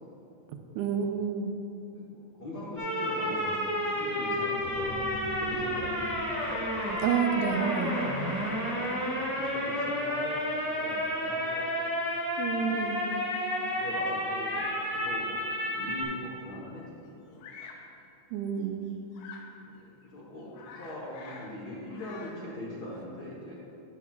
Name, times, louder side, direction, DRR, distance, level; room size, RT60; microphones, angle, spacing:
voice 1, 0.8-1.5 7.0-8.0 12.4-13.1 18.3-18.9, right 7 dB, 85° right, 5 dB, 2.1 m, -29 dB
voice 2, 1.9-6.5 8.2-11.7 12.5-13.0 13.7-17.6 19.6-23.6, left 1 dB, 70° left, -6 dB, 0.9 m, -42 dB
sound 1, 2.8-16.0, left 1 dB, 30° left, 2.5 m, -31 dB
sound 2, 4.6-10.1, right 1 dB, 15° right, 0.4 m, -46 dB
Bird vocalization bird call bird song, 17.4-17.9 19.1-19.5 20.0-20.1 20.4-21.6 21.8-22.5, left 5 dB, 85° left, 2.3 m, -47 dB
13.0 x 9.9 x 2.4 m, 2.8 s
omnidirectional pair, 3.7 m